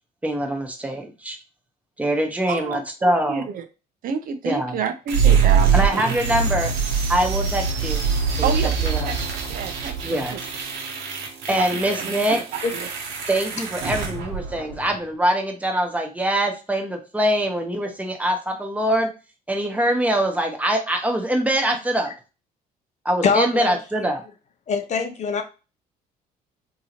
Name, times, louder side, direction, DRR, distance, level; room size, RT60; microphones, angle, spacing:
voice 1, 0.2-1.4 2.0-3.5 4.4-4.7 5.7-6.7 7.1-8.0 8.4-9.1 10.0-10.4 11.5-12.4 13.3-19.1 19.5-22.1 23.0-24.2, right 1 dB, 10° right, 0.9 m, -23 dB
voice 2, 2.5-3.6 4.0-6.0 8.4-8.7 9.0-9.2 9.5-10.4 11.5-12.9, right 6 dB, 55° right, 0.5 m, -29 dB
sound 1, 5.1-15.0, right 6 dB, 90° right, 1.0 m, -23 dB
voice 3, 23.2-24.1 24.7-25.4, left 5 dB, 45° left, 0.7 m, -23 dB
3.7 x 2.8 x 2.9 m
cardioid pair, 110°, 17 cm